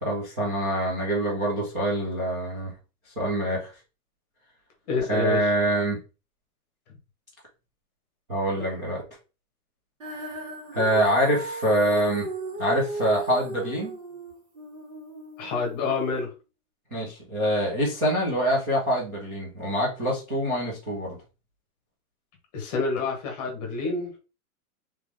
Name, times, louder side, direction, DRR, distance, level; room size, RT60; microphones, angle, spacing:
voice 1, 0.0-2.7 3.2-3.7 5.1-6.0 8.3-9.0 10.7-12.3 12.6-13.9 16.9-21.2, right 1 dB, 15° right, 0.5 m, -25 dB
voice 2, 4.9-5.4 15.4-16.3 22.5-24.1, left 4 dB, 25° left, 1.1 m, -27 dB
Female singing, 10.0-16.2, right 2 dB, 55° right, 2.0 m, -35 dB
3.4 x 3.0 x 3.1 m
supercardioid pair, 175°, 45 cm